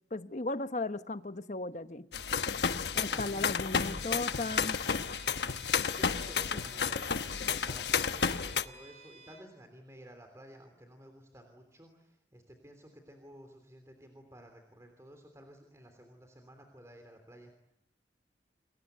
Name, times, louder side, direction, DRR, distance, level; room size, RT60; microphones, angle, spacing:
voice 1, 0.1-2.1 2.9-4.8 6.5-6.6, left 2 dB, 40° left, 1.0 m, -36 dB
sound 1, 2.1-8.6, left 6 dB, 70° left, 1.0 m, -31 dB
voice 2, 2.6-4.1 5.8-17.5, equal, 15° right, 3.2 m, -53 dB
Bowed string instrument, 3.7-9.5, right 2 dB, 35° right, 6.8 m, -54 dB
29.0 x 22.5 x 8.2 m
head